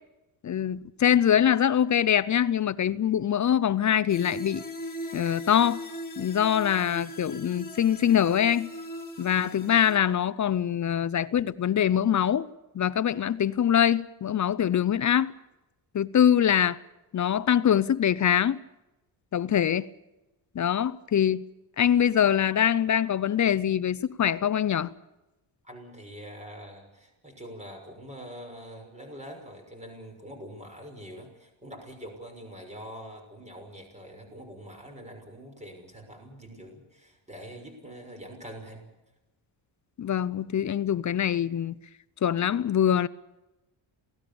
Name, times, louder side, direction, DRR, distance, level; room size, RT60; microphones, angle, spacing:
voice 1, 0.4-4.6 5.1-5.8 6.2-8.7 9.2-12.5 12.7-15.3 15.9-16.8 17.1-18.6 19.3-19.9 20.5-21.4 21.8-24.9 40.0-41.7 42.2-43.1, left 9 dB, 40° left, 0.7 m, -23 dB
sound 1, 4.1-10.0, equal, 20° left, 4.0 m, -39 dB
voice 2, 25.6-38.8, equal, 15° right, 6.1 m, -44 dB
28.0 x 18.5 x 7.0 m
cardioid pair, 150°, 46 cm